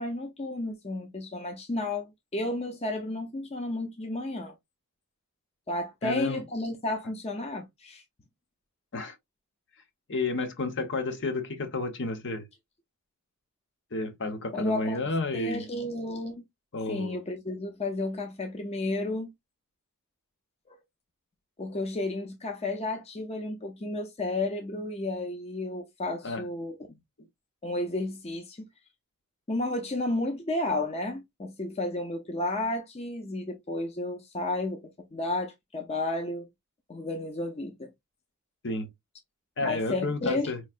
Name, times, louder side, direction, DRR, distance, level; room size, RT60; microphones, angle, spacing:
voice 1, 0.0-4.5 5.7-8.0 14.5-15.0 15.3-16.4 16.9-19.3 21.6-27.0 27.6-28.7 29.5-34.8 35.1-36.5 36.9-37.9 39.6-40.5, left 2 dB, 30° left, 0.6 m, -32 dB
voice 2, 6.0-6.4 8.9-9.1 10.1-12.5 13.9-15.6 16.7-17.2 26.2-26.5 38.6-38.9 39.6-40.6, left 2 dB, 60° left, 1.0 m, -31 dB
4.5 x 3.1 x 2.4 m
head